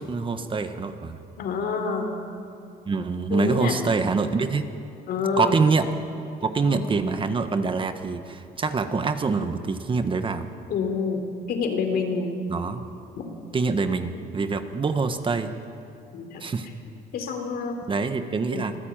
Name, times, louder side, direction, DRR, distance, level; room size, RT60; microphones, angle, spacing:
voice 1, 0.0-1.2 2.8-4.7 5.4-5.9 6.4-10.5 12.5-12.8 13.5-15.5 16.4-16.7 17.9-18.8, right 4 dB, 30° right, 8 dB, 1.4 m, -25 dB
voice 2, 1.4-2.1 3.3-3.8 5.1-5.6 6.6-6.8 10.7-12.4 13.2-13.3 16.1-16.4 17.1-17.8 18.5-18.7, left 5 dB, 65° left, 5 dB, 3.6 m, -27 dB
25.0 x 15.5 x 9.1 m, 2.6 s
cardioid pair, 110°, 17 cm